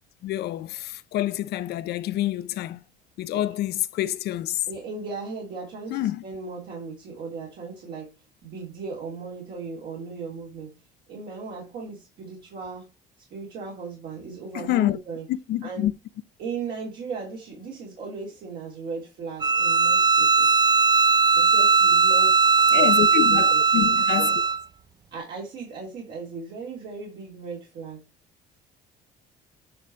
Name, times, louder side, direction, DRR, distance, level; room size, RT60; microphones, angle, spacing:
voice 1, 0.2-2.8 3.2-4.6 5.9-6.2 14.5-15.0 15.3-15.9 22.7-24.4, left 14 dB, 75° left, 0.6 m, -27 dB
voice 2, 4.7-8.1 8.4-10.7 11.1-12.9 13.3-15.2 15.6-15.9 16.4-20.6 21.3-22.4 22.7-22.9 23.3-23.9 24.1-24.3 25.1-28.0, right 4 dB, 70° right, 3.2 m, -37 dB
Bowed string instrument, 19.4-24.6, right 5 dB, 25° right, 0.4 m, -19 dB
9.9 x 3.3 x 4.2 m
cardioid pair, 110°, 17 cm